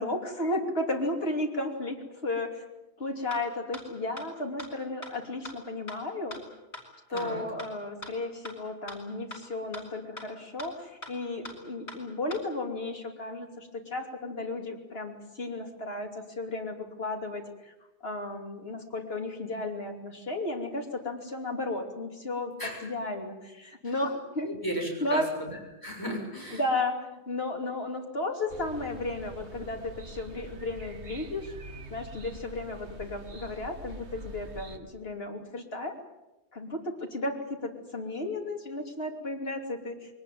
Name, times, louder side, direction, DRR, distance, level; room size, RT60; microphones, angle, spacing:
voice 1, 0.0-2.7 3.0-6.4 7.1-17.7 18.0-22.5 22.8-24.5 25.0-25.3 26.5-31.5 31.9-35.9 36.5-40.2, left 2 dB, 65° left, 2 dB, 3.2 m, -34 dB
sound 1, 3.3-3.4 3.7-3.8 4.2-4.3 4.6-4.7 5.0-5.1 5.5-5.6 5.9-6.0 6.3-6.4 6.7-6.8 7.2-7.3 7.6-7.7 8.0-8.1 8.5-8.6 8.9-9.0 9.3-9.4 9.7-9.8 10.2-10.3 10.6-10.7 11.0-11.1 11.5-11.6 11.9-12.0 12.3-12.4, left 1 dB, 80° left, 5.3 m, -40 dB
voice 2, 7.1-7.4 22.6-22.9 23.8-24.0 24.4-26.6, equal, 20° left, 0 dB, 6.9 m, -35 dB
sound 2, 28.5-34.8, right 2 dB, 85° right, 1.8 m, -44 dB
22.5 x 19.5 x 9.4 m, 0.99 s
omnidirectional pair, 1.1 m